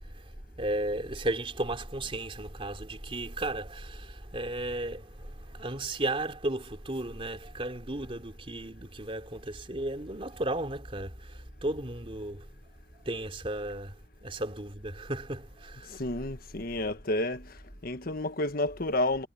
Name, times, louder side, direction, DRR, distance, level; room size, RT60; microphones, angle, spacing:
voice 1, 0.6-12.4 13.0-13.9 14.2-15.9, right 1 dB, 30° right, 3.3 m, -34 dB
voice 2, 15.9-17.5 17.8-19.3, left 2 dB, 55° left, 1.4 m, -30 dB
head